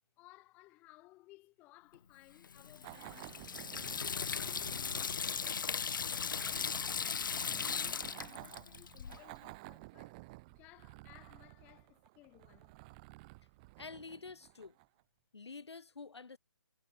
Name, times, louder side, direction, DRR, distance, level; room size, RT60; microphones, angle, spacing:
voice 1, 0.2-3.4 3.9-5.5 6.3-10.2 10.5-12.7, left 20 dB, 10° left, 1.7 m, -61 dB
Water tap faucet / Sink (filling or washing), 2.4-9.2, left 6 dB, 45° left, 1.5 m, -38 dB
sound 1, 2.8-15.0, right 25 dB, 15° right, 5.1 m, -53 dB
voice 2, 13.8-14.8 15.3-16.4, left 4 dB, 70° left, 5.5 m, -48 dB
hypercardioid pair, 170°, 14 cm